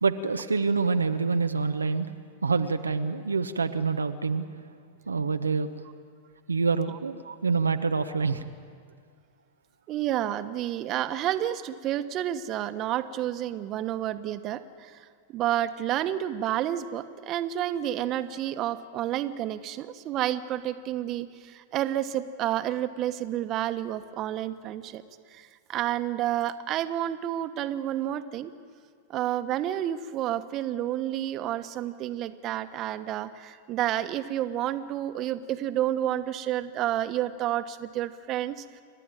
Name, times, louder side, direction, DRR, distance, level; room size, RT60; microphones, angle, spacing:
voice 1, 0.0-2.1 2.4-4.4 5.1-5.7 6.5-8.4, right 4 dB, 90° right, 8 dB, 0.9 m, -26 dB
voice 2, 9.9-25.0 25.3-28.5 29.1-38.6, right 12 dB, 40° right, 11 dB, 1.3 m, -30 dB
29.5 x 12.5 x 9.0 m, 2.1 s
hypercardioid pair, 95°, 0 cm